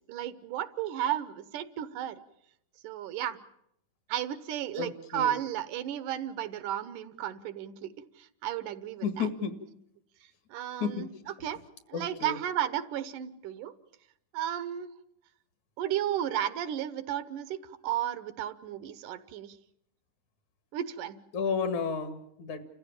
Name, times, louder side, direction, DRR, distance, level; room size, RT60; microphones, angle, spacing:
voice 1, 0.1-2.2 2.8-3.4 4.1-7.9 8.2-9.3 10.5-11.1 11.4-11.6 11.9-13.7 14.3-14.9 15.8-17.6 17.8-19.6 20.7-21.2, right 11 dB, 80° right, 13 dB, 2.6 m, -33 dB
voice 2, 4.8-5.4 9.0-9.6 10.8-11.3 11.9-12.4 21.3-22.6, left 5 dB, 65° left, 9 dB, 3.2 m, -32 dB
29.5 x 15.0 x 8.8 m, 0.76 s
omnidirectional pair, 3.6 m